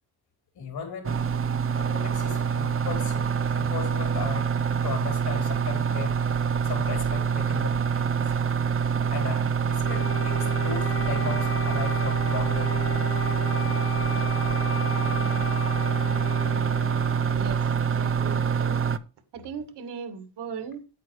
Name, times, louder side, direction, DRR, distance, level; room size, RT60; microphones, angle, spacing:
voice 1, 0.6-1.2 1.8-6.2 6.6-8.2 9.1-12.9, left 5 dB, 65° left, 4.1 m, -36 dB
sound 1, 1.0-19.0, right 6 dB, 35° right, 0.7 m, -25 dB
Wind instrument woodwind instrument, 9.8-17.5, left 6 dB, 35° left, 0.6 m, -36 dB
voice 2, 17.3-18.8 19.3-21.0, right 6 dB, 80° right, 2.2 m, -38 dB
9.5 x 8.3 x 4.7 m
cardioid pair, 115°, 40 cm